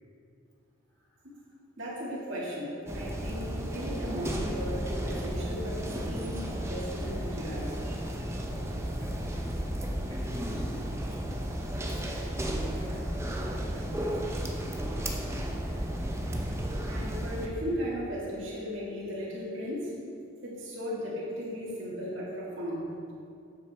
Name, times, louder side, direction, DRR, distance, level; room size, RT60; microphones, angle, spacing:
voice 1, 0.9-1.5 8.5-8.7 9.0-9.7 10.1-11.2 11.8-13.3 13.7-15.5, left 1 dB, 20° left, -5 dB, 1.9 m, -50 dB
voice 2, 1.8-7.8 16.9-19.9 20.4-22.9, equal, 75° right, -7 dB, 2.2 m, -36 dB
sound 1, 2.9-17.5, equal, 15° right, 0.7 m, -33 dB
9.4 x 7.4 x 3.6 m, 2.5 s
head